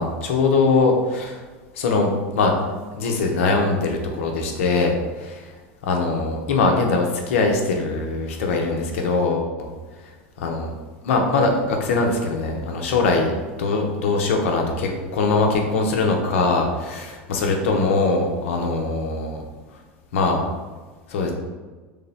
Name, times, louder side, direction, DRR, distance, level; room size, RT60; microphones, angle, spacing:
voice 1, 0.0-1.4 1.7-2.1 2.3-2.5 2.9-5.5 5.8-9.7 10.4-10.7 11.0-13.3 13.6-19.4 20.1-20.4 21.1-21.3, left 3 dB, 80° left, 2 dB, 0.6 m, -22 dB
3.3 x 2.0 x 3.9 m, 1.3 s
hypercardioid pair, 105°, 7 cm